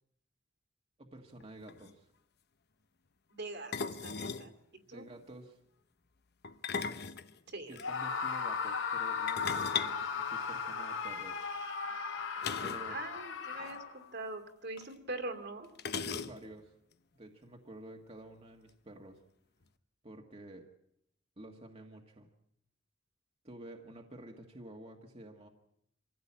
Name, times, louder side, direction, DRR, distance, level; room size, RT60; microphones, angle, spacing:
voice 1, 1.0-2.1 4.9-5.6 7.7-11.4 12.6-13.0 16.0-16.7 17.1-19.2 20.0-20.7 21.4-22.3 23.4-25.5, right 1 dB, 30° right, 2 dB, 1.6 m, -50 dB
sound 1, 1.4-1.5 1.7-1.9 3.7-4.5 6.4-7.9 9.3-10.9 12.4-12.9 13.2-13.3 13.6-13.8 14.8-14.9 15.8-16.6, left 6 dB, 55° left, 1.0 m, -38 dB
voice 2, 3.3-4.5 4.9-5.0 7.5-7.8 12.9-15.7, right 2 dB, 60° right, 6 dB, 2.6 m, -43 dB
Screaming, 7.8-14.0, left 5 dB, 80° left, 3.0 m, -36 dB
25.5 x 15.5 x 8.7 m, 0.76 s
head